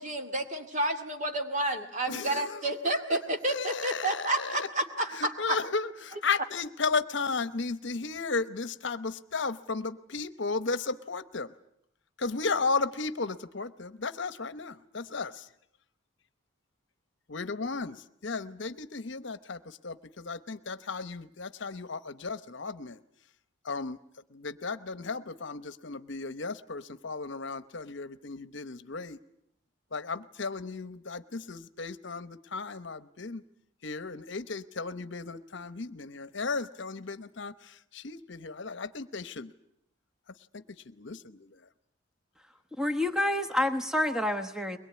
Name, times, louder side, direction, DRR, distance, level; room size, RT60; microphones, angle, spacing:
voice 1, 0.0-5.6, right 1 dB, 35° right, 6 dB, 2.2 m, -30 dB
voice 2, 2.1-2.6 3.4-4.7 5.2-11.5 12.2-15.5 17.3-23.0 23.6-24.0 24.3-29.2 29.9-33.4 33.8-39.5 40.5-40.6 41.0-41.5, left 4 dB, 60° left, 14 dB, 0.9 m, -34 dB
voice 3, 42.8-44.8, left 1 dB, 5° right, 7 dB, 1.2 m, -28 dB
22.5 x 21.0 x 9.5 m, 0.74 s
head